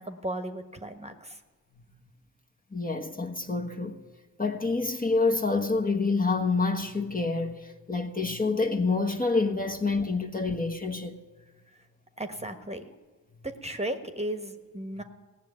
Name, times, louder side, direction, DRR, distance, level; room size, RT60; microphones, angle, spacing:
voice 1, 0.0-1.4 12.2-12.9 13.4-15.0, right 1 dB, 15° right, 1.2 m, -35 dB
voice 2, 2.7-4.0 4.4-11.2, left 3 dB, 20° left, 1.2 m, -27 dB
16.5 x 6.4 x 9.3 m
supercardioid pair, 40°, 38 cm